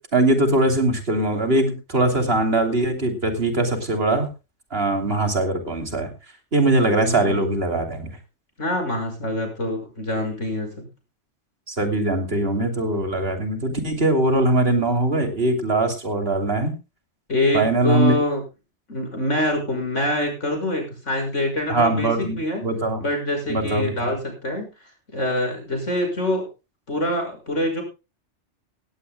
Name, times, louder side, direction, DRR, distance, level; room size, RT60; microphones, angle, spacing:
voice 1, 0.1-4.3 4.7-6.1 6.5-8.1 11.7-16.7 17.5-18.1 21.7-23.0 23.5-23.9, right 2 dB, 55° right, 5 dB, 3.3 m, -21 dB
voice 2, 7.0-7.4 8.6-10.9 17.3-18.4 18.9-22.6 23.0-24.7 25.1-26.5 26.9-27.8, left 1 dB, 80° left, 3 dB, 6.5 m, -25 dB
17.5 x 16.5 x 2.3 m, 0.29 s
omnidirectional pair, 1.2 m